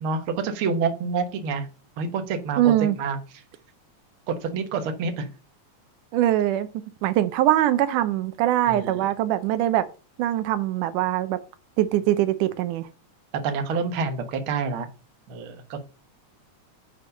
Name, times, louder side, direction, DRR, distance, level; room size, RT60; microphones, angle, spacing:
voice 1, 0.0-1.7 2.0-3.2 4.4-5.3 8.7-9.1 13.4-14.9 15.3-15.8, right 5 dB, 55° right, 1.8 m, -28 dB
voice 2, 2.6-3.0 6.1-6.7 7.0-9.9 10.2-11.4 11.8-12.9, right 13 dB, 85° right, 2.2 m, -22 dB
8.5 x 4.5 x 5.4 m
omnidirectional pair, 3.6 m